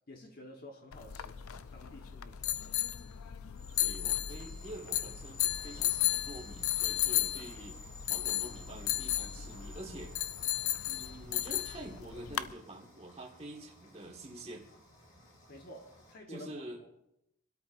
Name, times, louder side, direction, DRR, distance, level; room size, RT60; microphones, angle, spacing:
voice 1, 0.1-1.4 1.7-2.6 15.5-16.5 16.8-17.0, left 1 dB, 45° left, 1.2 m, -51 dB
sound 1, 0.9-12.5, left 13 dB, 85° left, 0.5 m, -34 dB
sound 2, 1.2-16.1, equal, 65° left, 4.8 m, -59 dB
sound 3, 3.6-10.5, left 2 dB, 5° left, 1.4 m, -53 dB
voice 2, 3.8-7.8 8.1-10.2 10.9-14.7 16.3-17.0, right 1 dB, 30° right, 1.7 m, -47 dB
26.5 x 13.0 x 2.6 m
head